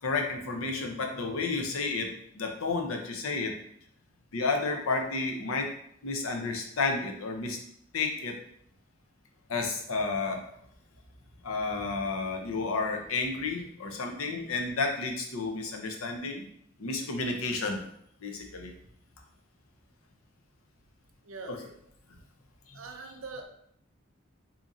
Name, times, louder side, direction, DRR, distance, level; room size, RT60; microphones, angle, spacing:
voice 1, 0.0-3.5 4.3-5.7 6.0-7.6 7.9-8.4 9.5-10.5 11.4-16.5 16.8-17.8 18.2-18.7 21.5-21.6 22.7-22.8, left 3 dB, 90° left, 2 dB, 0.7 m, -31 dB
voice 2, 21.2-21.7 22.7-23.5, right 4 dB, 75° right, 4 dB, 0.6 m, -42 dB
2.9 x 2.5 x 3.8 m, 0.69 s
head